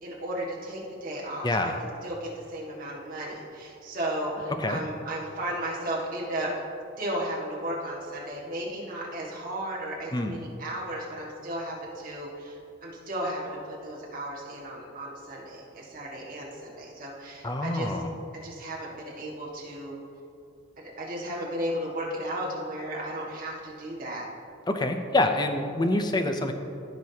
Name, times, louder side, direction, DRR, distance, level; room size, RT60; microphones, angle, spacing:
voice 1, 0.0-1.7 2.0-6.5 7.0-18.0 18.4-20.0 20.8-24.3, right 1 dB, 45° right, -4 dB, 1.7 m, -34 dB
voice 2, 1.4-1.8 4.6-4.8 10.1-10.4 17.4-18.1 24.7-26.5, left 2 dB, 20° left, 6 dB, 0.5 m, -26 dB
15.0 x 6.1 x 2.8 m, 2.6 s
head